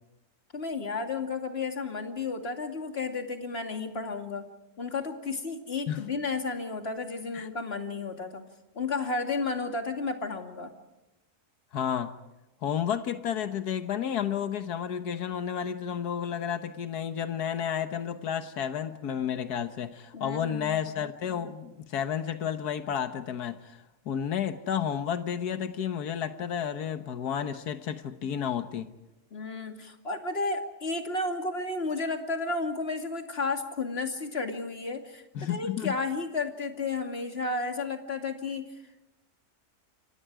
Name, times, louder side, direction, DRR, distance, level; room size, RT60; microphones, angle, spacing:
voice 1, 0.5-4.4 4.8-8.4 8.7-10.7 20.1-20.8 29.3-38.7, left 3 dB, 40° left, 2.7 m, -32 dB
voice 2, 11.7-12.1 12.6-28.9 35.3-36.0, left 8 dB, 90° left, 1.7 m, -31 dB
29.5 x 26.0 x 4.8 m
omnidirectional pair, 1.6 m